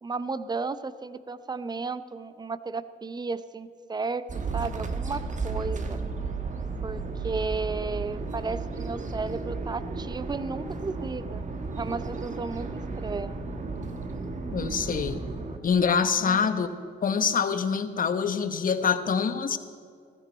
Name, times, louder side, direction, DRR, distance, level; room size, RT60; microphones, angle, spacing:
voice 1, 0.0-4.2 4.5-6.0 6.8-11.4 11.8-13.4 16.2-16.5, right 4 dB, 20° right, 14 dB, 0.6 m, -34 dB
sound 1, 4.3-15.6, right 4 dB, 40° right, 1.3 m, -33 dB
voice 2, 14.5-15.2 15.6-16.7 17.0-19.6, left 6 dB, 45° left, 10 dB, 1.0 m, -25 dB
15.0 x 14.5 x 4.4 m, 2.3 s
cardioid pair, 90°, 20 cm